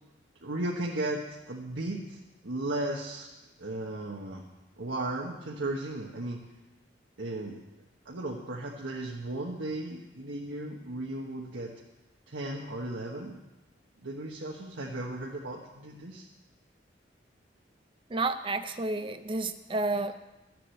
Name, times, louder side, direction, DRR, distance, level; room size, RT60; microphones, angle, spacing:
voice 1, 0.4-3.3 3.6-4.4 4.8-6.4 7.2-7.6 8.0-11.7 12.3-13.4 14.0-16.3, right 1 dB, 90° right, -2 dB, 1.3 m, -35 dB
voice 2, 18.1-20.2, right 2 dB, 30° right, 10 dB, 0.5 m, -31 dB
13.0 x 7.6 x 7.8 m, 1.0 s
head